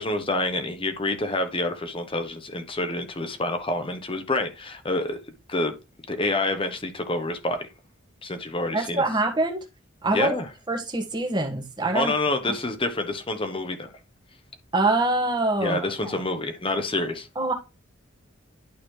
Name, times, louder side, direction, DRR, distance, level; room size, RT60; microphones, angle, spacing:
voice 1, 0.0-5.2 5.5-5.7 6.1-7.7 8.2-9.0 10.1-10.5 11.9-13.9 15.6-17.3, left 2 dB, 25° left, 1.1 m, -27 dB
voice 2, 8.7-9.6 10.0-10.4 10.7-12.1 12.5-12.6 14.7-16.2 17.3-17.5, right 2 dB, 20° right, 1.6 m, -25 dB
11.5 x 4.1 x 3.3 m
head